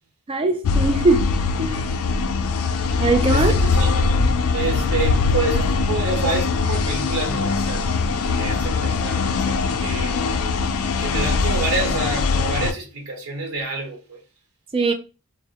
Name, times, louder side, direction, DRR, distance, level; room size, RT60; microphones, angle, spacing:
voice 1, 0.3-1.8 3.0-3.5 14.7-14.9, right 2 dB, 25° right, 0.3 m, -20 dB
sound 1, 0.6-12.7, left 4 dB, 80° left, 0.3 m, -21 dB
voice 2, 3.3-3.9 4.5-10.2 11.0-14.2, right 3 dB, 85° right, 0.9 m, -28 dB
2.2 x 2.1 x 2.7 m
head